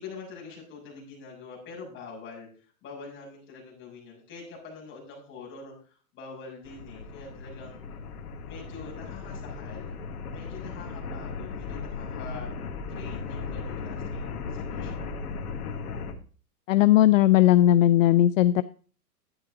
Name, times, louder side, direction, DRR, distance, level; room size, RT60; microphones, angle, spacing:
voice 1, 0.0-7.8 8.4-9.9 10.3-12.5 12.8-15.1, left 4 dB, 25° left, -2 dB, 6.7 m, -45 dB
sound 1, 6.6-16.1, left 4 dB, 75° left, 2.4 m, -36 dB
voice 2, 16.7-18.6, left 13 dB, 60° left, 14 dB, 0.7 m, -18 dB
12.0 x 9.9 x 3.9 m, 0.40 s
hypercardioid pair, 145°, 46 cm